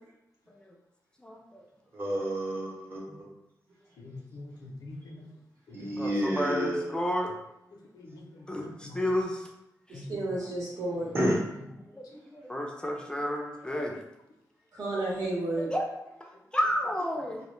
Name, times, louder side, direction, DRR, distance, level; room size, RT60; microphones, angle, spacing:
voice 1, 1.2-1.6 3.1-3.2 5.9-7.3 8.5-9.5 11.8-12.0 12.3-14.0 15.7-15.8 16.5-17.4, equal, 15° left, 0 dB, 0.3 m, -31 dB
voice 2, 1.9-3.2 5.7-6.9 11.1-11.3, right 1 dB, 35° right, -4 dB, 0.8 m, -29 dB
voice 3, 4.0-5.3 5.7-5.8 7.9-9.0 9.9-10.0, left 2 dB, 85° left, 1 dB, 0.4 m, -45 dB
voice 4, 9.9-11.1 12.1-12.2 14.7-15.7, right 2 dB, 75° right, -5 dB, 0.9 m, -32 dB
2.1 x 2.1 x 3.0 m, 0.87 s
wide cardioid pair, 110°, 6 cm